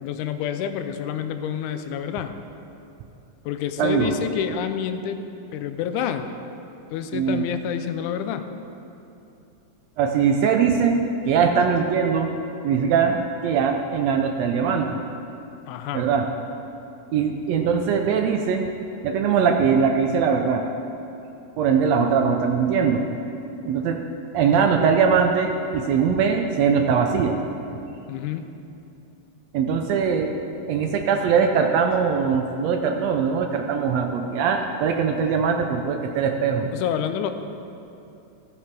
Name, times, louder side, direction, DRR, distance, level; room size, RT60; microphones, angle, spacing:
voice 1, 0.0-2.3 3.5-5.2 5.5-6.3 6.9-8.5 15.7-16.1 28.1-28.5 36.7-37.3, left 9 dB, 90° left, 9 dB, 2.0 m, -28 dB
voice 2, 3.8-4.1 7.1-7.5 10.0-12.3 12.6-15.0 15.9-16.3 17.1-18.7 19.0-20.6 21.6-23.0 23.6-24.0 24.3-27.4 29.5-30.3 30.7-36.7, right 6 dB, 80° right, 4 dB, 1.6 m, -21 dB
14.5 x 5.9 x 4.6 m, 2.8 s
omnidirectional pair, 3.4 m